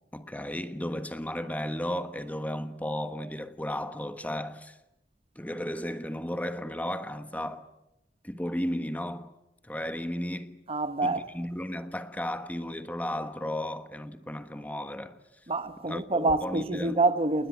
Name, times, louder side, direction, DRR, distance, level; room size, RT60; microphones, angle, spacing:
voice 1, 0.1-4.8 5.3-7.7 8.2-9.3 9.6-10.6 11.0-15.2 15.9-17.0, left 1 dB, 10° left, 1.3 m, -34 dB
voice 2, 10.7-11.2 15.5-17.5, right 2 dB, 35° right, 1.0 m, -27 dB
29.0 x 20.0 x 9.0 m
head